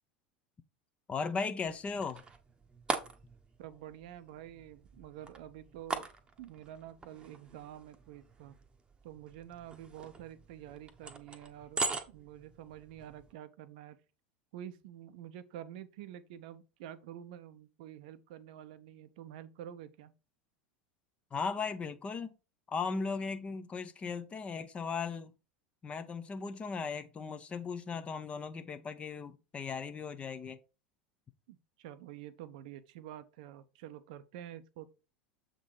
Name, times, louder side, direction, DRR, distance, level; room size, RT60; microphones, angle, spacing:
voice 1, 1.1-2.2 21.3-22.3 22.7-25.3 25.8-30.6, left 5 dB, 25° left, 0.8 m, -37 dB
sound 1, 1.6-13.3, right 4 dB, 20° right, 0.9 m, -42 dB
voice 2, 3.6-6.1 6.4-8.6 9.0-11.8 12.1-14.0 14.5-20.1 31.5-34.9, right 11 dB, 55° right, 0.6 m, -48 dB
7.2 x 3.9 x 4.6 m
figure-of-eight pair, 80°, 5 cm